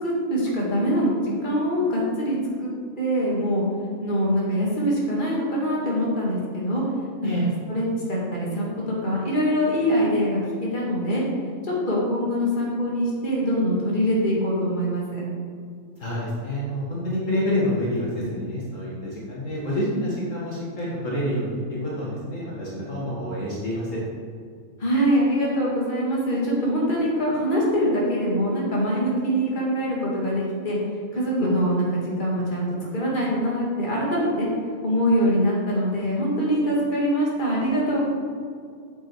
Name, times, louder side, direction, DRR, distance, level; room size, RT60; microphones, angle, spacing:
voice 1, 0.0-2.7 3.0-3.6 4.0-6.8 7.2-11.2 11.6-15.2 24.8-30.8 31.1-32.7 32.9-34.5 34.8-38.0, equal, 35° left, -5 dB, 2.5 m, -24 dB
voice 2, 16.0-24.0 31.4-31.5, left 1 dB, 65° left, -5 dB, 2.1 m, -27 dB
8.8 x 8.0 x 4.7 m, 2.2 s
omnidirectional pair, 1.5 m